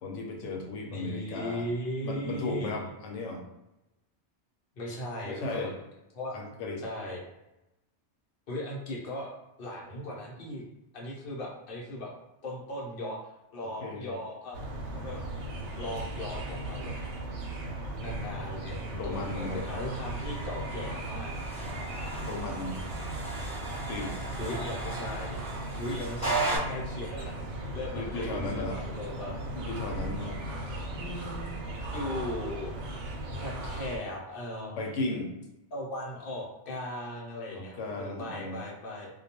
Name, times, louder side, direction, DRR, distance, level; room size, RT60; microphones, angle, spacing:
voice 1, 0.0-1.7 2.0-3.4 5.2-5.7 6.3-6.8 13.6-14.2 18.9-19.6 22.2-22.8 23.9-24.1 27.9-28.8 29.5-30.4 34.8-35.3 37.5-38.6, left 2 dB, 85° left, 2 dB, 0.9 m, -35 dB
voice 2, 0.9-2.9 4.7-5.8 6.1-6.4 6.8-7.2 8.5-9.3 9.6-10.6 10.9-12.1 12.4-14.6 14.9-15.4 15.8-16.9 18.0-21.7 22.5-23.1 24.4-25.4 25.8-27.4 27.7-29.4 30.9-32.7 33.4-35.2 35.7-39.1, left 1 dB, 55° left, -3 dB, 0.8 m, -38 dB
sound 1, 14.5-34.0, right 1 dB, 80° right, 0.9 m, -37 dB
sound 2, 19.1-26.6, right 2 dB, 5° left, 0.8 m, -37 dB
2.3 x 2.2 x 2.8 m, 0.92 s
omnidirectional pair, 1.2 m